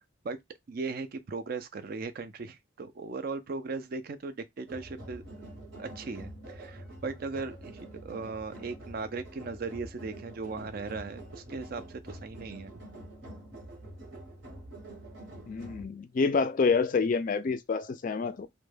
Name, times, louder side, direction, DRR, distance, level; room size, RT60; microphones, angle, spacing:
voice 1, 0.7-5.5 5.8-12.7, right 4 dB, 45° right, 0.4 m, -38 dB
sound 1, 4.7-15.9, right 1 dB, 65° right, 0.9 m, -46 dB
voice 2, 15.5-18.5, left 4 dB, 40° left, 0.3 m, -27 dB
2.2 x 2.1 x 3.2 m
head